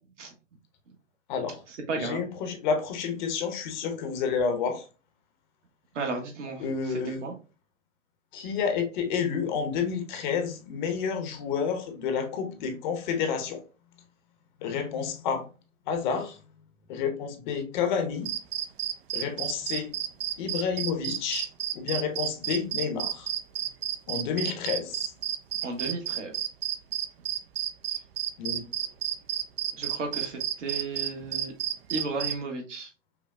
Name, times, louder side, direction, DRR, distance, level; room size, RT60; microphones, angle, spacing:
voice 1, 1.3-1.6 2.0-4.9 6.6-7.2 8.3-13.6 14.6-15.5 15.9-16.4 16.9-18.3 19.1-19.9 20.4-21.5 21.7-23.3 24.1-25.1 28.4-28.6, left 6 dB, 40° left, 6 dB, 0.8 m, -30 dB
voice 2, 1.9-2.2 5.9-7.3 25.6-26.3 29.8-31.5 31.9-32.9, right 3 dB, 70° right, 2 dB, 1.3 m, -34 dB
sound 1, 18.3-32.4, right 11 dB, 50° right, 0.4 m, -31 dB
5.6 x 2.2 x 2.3 m, 0.33 s
hypercardioid pair, 120°, 38 cm